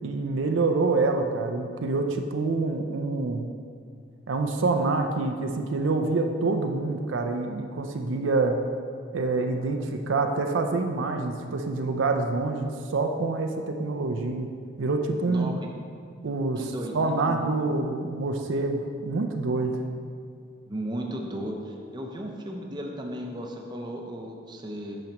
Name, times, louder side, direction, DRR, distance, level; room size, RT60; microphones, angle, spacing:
voice 1, 0.0-3.5 4.3-8.6 9.1-14.5 14.8-15.6 16.2-19.8, right 3 dB, 70° right, 4 dB, 0.5 m, -26 dB
voice 2, 16.6-17.4 20.7-25.0, right 1 dB, 20° right, 1 dB, 0.6 m, -35 dB
8.8 x 6.2 x 3.0 m, 2.2 s
head